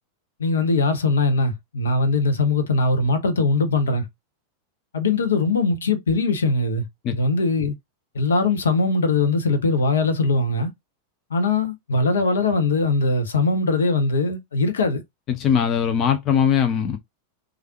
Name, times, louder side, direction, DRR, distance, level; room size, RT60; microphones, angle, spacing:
voice 1, 0.4-4.1 4.9-7.7 8.1-10.7 11.3-15.0, left 3 dB, 70° left, 0.7 m, -21 dB
voice 2, 15.3-17.0, left 8 dB, 35° left, 0.4 m, -20 dB
3.2 x 2.4 x 2.8 m
figure-of-eight pair, 90°, 0 cm